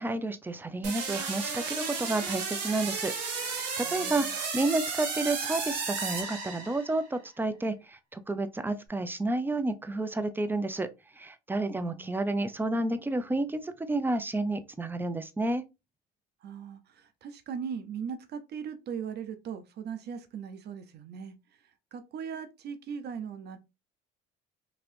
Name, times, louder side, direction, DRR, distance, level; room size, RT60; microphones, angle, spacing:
voice 1, 0.0-10.9 11.2-15.6, right 2 dB, 10° right, 0.4 m, -31 dB
sound 1, 0.8-7.0, right 5 dB, 90° right, 1.0 m, -33 dB
voice 2, 3.8-4.4 11.7-12.2 16.4-21.3 21.9-23.6, right 7 dB, 50° right, 0.7 m, -39 dB
2.9 x 2.8 x 2.6 m
supercardioid pair, 75°, 21 cm